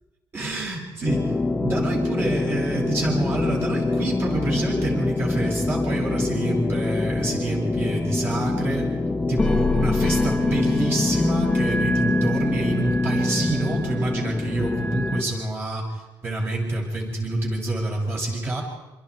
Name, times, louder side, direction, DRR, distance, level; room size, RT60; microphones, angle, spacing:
voice 1, 0.3-1.3 1.6-8.9 9.3-18.6, right 2 dB, 30° right, -2 dB, 7.7 m, -27 dB
sound 1, 1.1-15.2, left 2 dB, 10° left, 1.6 m, -24 dB
29.5 x 26.5 x 5.0 m, 1.1 s
cardioid pair, 170°, 8 cm